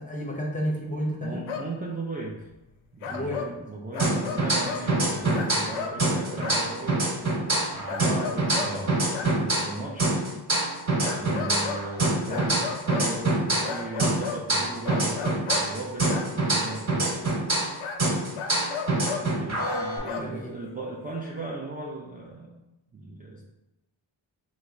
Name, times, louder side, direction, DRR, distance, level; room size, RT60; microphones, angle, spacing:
voice 1, 0.0-1.4 3.0-3.6 8.0-8.3 12.3-12.5 20.2-20.6, equal, 15° left, -2 dB, 0.7 m, -32 dB
voice 2, 1.2-2.4 2.9-3.4 3.6-7.1 7.7-9.0 9.3-10.1 11.1-17.2 19.4-22.6 22.9-23.4, right 2 dB, 20° right, -4 dB, 0.5 m, -37 dB
sound 1, 1.5-1.7 2.5-2.6 3.0-3.6 3.9-4.9 5.3-6.0 6.4-6.7 7.9-8.8 9.1-9.3 11.0-11.9 12.3-13.1 13.6-14.5 14.8-15.7 16.1-16.3 17.8-18.0 18.4-19.3 19.7-20.3 21.1-21.2, left 6 dB, 80° left, 0.5 m, -34 dB
sound 2, 4.0-5.7 6.0-9.7 10.0-13.7 14.0-17.7 18.0-20.0, right 2 dB, 35° right, 1.1 m, -25 dB
2.8 x 2.1 x 3.5 m, 0.96 s
cardioid pair, 55°, 48 cm